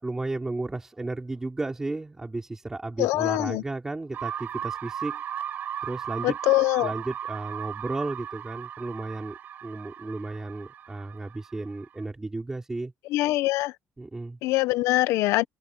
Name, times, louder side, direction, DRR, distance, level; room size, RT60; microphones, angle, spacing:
voice 1, 0.0-5.2 5.8-6.4 6.8-12.9 14.0-14.4, right 2 dB, 10° right, 4.1 m, -33 dB
voice 2, 3.0-3.6 6.2-6.9 13.1-13.7 14.4-15.4, left 18 dB, 85° left, 0.7 m, -23 dB
sound 1, 4.1-12.0, right 9 dB, 40° right, 4.7 m, -36 dB
open air
cardioid pair, 180°, 5 cm